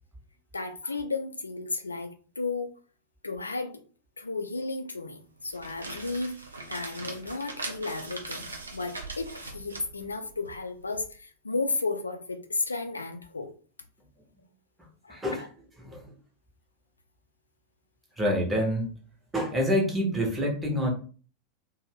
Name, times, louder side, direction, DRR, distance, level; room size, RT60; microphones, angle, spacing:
voice 1, 0.5-2.7 3.2-3.8 4.2-13.5 15.0-15.5, left 3 dB, 80° left, 0.4 m, -33 dB
sound 1, 5.4-11.0, right 3 dB, 75° right, 0.5 m, -41 dB
voice 2, 15.1-15.4 15.8-16.0 18.2-18.9 19.3-20.9, equal, 10° right, 1.0 m, -27 dB
2.5 x 2.2 x 3.3 m
figure-of-eight pair, 90°, 0 cm